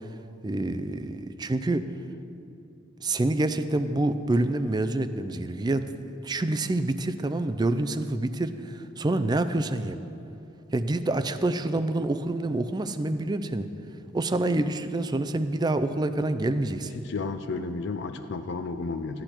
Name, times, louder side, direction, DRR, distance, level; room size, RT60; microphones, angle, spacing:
voice 1, 0.4-1.8 3.0-5.8 6.2-10.0 10.7-13.7 14.1-16.9, right 2 dB, 20° right, 11 dB, 0.4 m, -27 dB
voice 2, 16.9-19.2, left 4 dB, 60° left, 8 dB, 0.4 m, -32 dB
13.5 x 10.0 x 4.4 m, 2.8 s
head